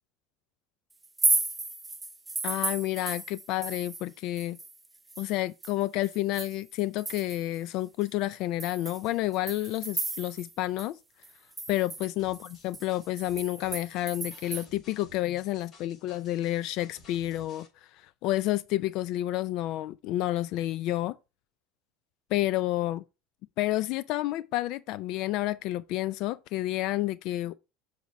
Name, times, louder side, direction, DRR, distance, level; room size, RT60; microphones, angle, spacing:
sound 1, 1.0-4.1 4.4-7.6 8.0-8.1 8.6-10.5 10.8-10.9 11.2-14.6, right 3 dB, 10° right, 0.6 m, -34 dB
voice 1, 2.4-4.6 5.2-11.0 11.7-17.7 17.9-21.1 22.3-23.0 23.6-27.6, left 15 dB, 50° left, 0.3 m, -30 dB
sound 2, 12.2-17.7, left 2 dB, 30° left, 4.3 m, -55 dB
7.2 x 4.1 x 4.5 m
cardioid pair, 165°, 0 cm